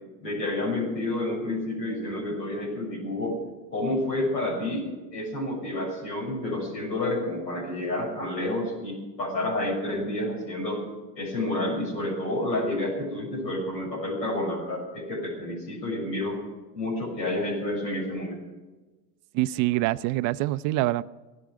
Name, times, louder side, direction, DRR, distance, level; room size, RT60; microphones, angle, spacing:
voice 1, 0.2-3.4 3.7-4.8 5.1-10.8 11.1-16.4 16.7-18.4, left 1 dB, 80° left, -3 dB, 6.7 m, -29 dB
voice 2, 19.3-21.0, right 17 dB, 40° right, 15 dB, 0.5 m, -25 dB
17.5 x 11.5 x 6.6 m, 1.2 s
hypercardioid pair, 95°, 49 cm